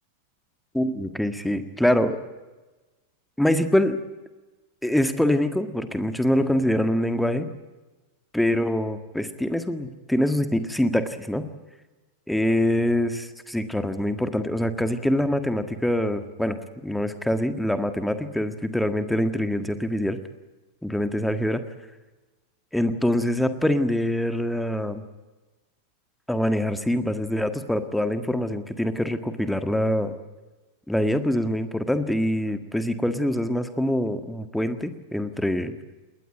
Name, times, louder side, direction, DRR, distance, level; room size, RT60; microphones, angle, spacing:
voice 1, 0.7-2.2 3.4-4.0 4.8-7.5 8.3-11.5 12.3-16.6 16.8-20.2 20.8-21.6 22.7-25.0 26.3-30.1 30.9-35.7, left 1 dB, ahead, 10 dB, 1.7 m, -24 dB
21.0 x 19.5 x 9.2 m, 1.2 s
figure-of-eight pair, 90°, 0 cm